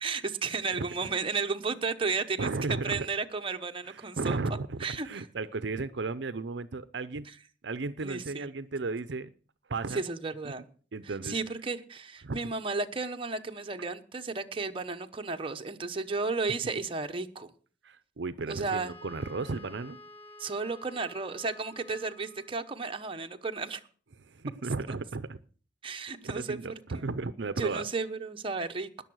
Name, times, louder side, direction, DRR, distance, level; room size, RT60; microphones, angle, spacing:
voice 1, 0.0-2.5 2.8-4.4 4.8-5.3 8.0-8.5 9.9-10.6 11.0-17.5 18.5-18.9 20.4-23.8 24.9-25.0 25.8-26.6 26.9-27.1 27.6-29.0, right 4 dB, 30° right, 1.0 m, -33 dB
voice 2, 2.4-3.1 3.8-7.3 7.6-9.3 9.7-10.0 10.4-10.5 10.9-11.4 12.2-12.4 17.8-20.0 24.3-25.4 26.2-27.8, right 3 dB, 70° right, 0.7 m, -34 dB
Wind instrument woodwind instrument, 18.7-22.7, left 1 dB, 30° left, 1.3 m, -51 dB
19.5 x 6.9 x 6.3 m
head